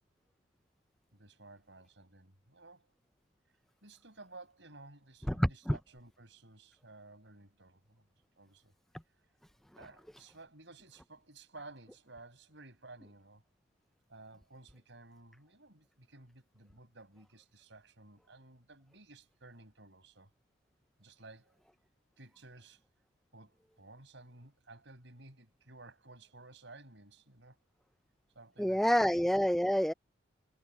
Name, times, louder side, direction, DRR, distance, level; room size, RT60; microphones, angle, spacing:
voice 1, 1.1-2.9 3.8-8.0 8.4-8.7 9.8-13.4 14.1-20.3 21.0-21.6 22.2-22.8 23.3-27.6 28.4-29.1, right 2 dB, 60° right, 5.6 m, -55 dB
voice 2, 5.3-5.8 28.6-29.9, equal, ahead, 0.3 m, -28 dB
head